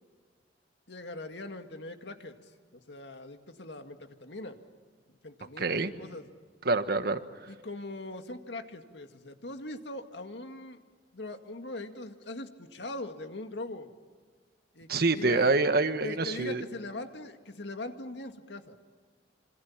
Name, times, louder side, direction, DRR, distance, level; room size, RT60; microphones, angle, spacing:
voice 1, 0.9-4.6 5.2-6.2 7.5-10.8 11.1-13.9 14.7-15.5 16.0-18.8, left 2 dB, 70° left, 6 dB, 2.1 m, -41 dB
voice 2, 5.6-5.9 6.6-7.2 14.9-16.6, right 3 dB, 60° right, 9 dB, 1.4 m, -26 dB
27.5 x 26.5 x 7.3 m, 1.5 s
head